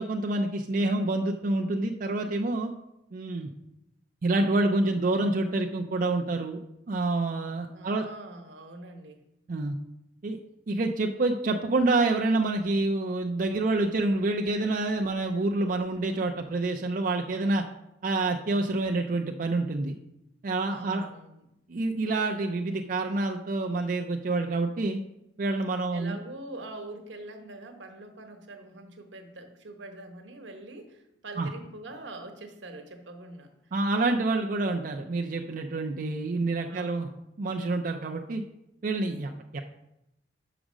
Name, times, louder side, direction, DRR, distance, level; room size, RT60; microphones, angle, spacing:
voice 1, 0.0-2.7 3.1-3.5 4.2-6.6 6.9-8.0 9.5-9.8 10.2-10.4 10.7-17.6 18.0-19.9 20.4-21.1 21.7-25.0 25.4-26.2 31.4-31.5 33.7-37.1 37.4-38.4 38.8-39.6, right 2 dB, 50° right, 2 dB, 0.5 m, -27 dB
voice 2, 7.7-9.2 20.7-21.5 25.9-33.5 36.7-37.2, right 2 dB, 85° right, 5 dB, 1.1 m, -43 dB
6.2 x 5.0 x 6.1 m, 0.87 s
head